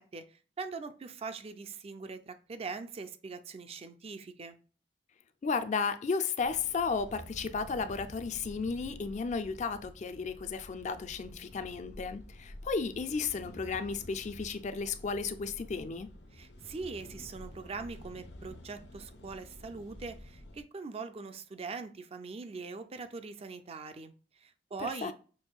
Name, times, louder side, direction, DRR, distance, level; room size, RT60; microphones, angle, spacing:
voice 1, 0.0-4.6 16.3-25.1, right 4 dB, 35° right, 0.4 m, -42 dB
voice 2, 5.4-16.1 24.8-25.1, left 5 dB, 40° left, 0.4 m, -34 dB
sound 1, 6.4-20.6, left 1 dB, 80° left, 0.8 m, -50 dB
6.2 x 2.6 x 2.3 m
head